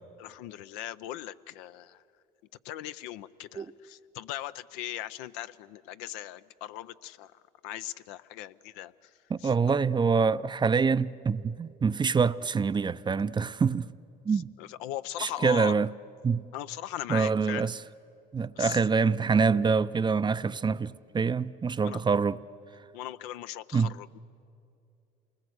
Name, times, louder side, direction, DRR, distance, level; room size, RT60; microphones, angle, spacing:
voice 1, 0.2-2.0 2.6-9.1 9.4-9.5 14.3-15.7 16.5-17.7 18.6-18.8 21.8-22.0 22.9-24.2, left 13 dB, 75° left, 0.6 m, -39 dB
voice 2, 9.3-13.9 14.3-14.5 15.2-15.9 16.2-16.4 17.1-17.8 18.3-22.4 23.7-23.9, right 5 dB, 25° right, 0.5 m, -25 dB
28.0 x 20.0 x 8.0 m
hypercardioid pair, 70°, 20 cm